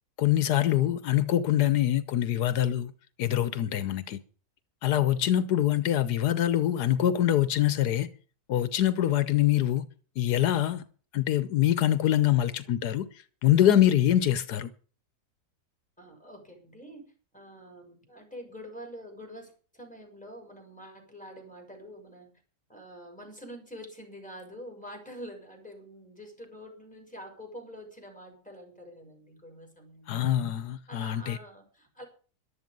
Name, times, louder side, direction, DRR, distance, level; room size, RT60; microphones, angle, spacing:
voice 1, 0.2-2.9 3.2-4.2 4.8-8.1 8.5-9.9 10.2-10.8 11.1-13.0 13.4-14.7 30.1-31.4, left 12 dB, 85° left, 1.4 m, -24 dB
voice 2, 16.0-22.3 22.7-30.3 30.9-32.0, equal, 5° left, 6.5 m, -46 dB
13.5 x 12.0 x 5.3 m
omnidirectional pair, 1.7 m